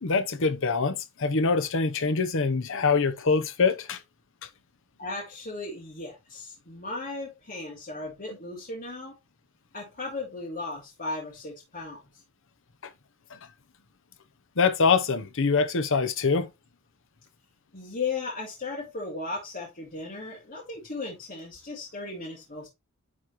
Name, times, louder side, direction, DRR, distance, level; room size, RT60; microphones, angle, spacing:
voice 1, 0.0-4.0 13.3-13.4 14.6-16.5, left 4 dB, 65° left, 0.8 m, -24 dB
voice 2, 5.0-9.1 9.7-12.0 17.7-22.7, left 3 dB, 40° left, 2.2 m, -36 dB
9.8 x 4.1 x 3.0 m
head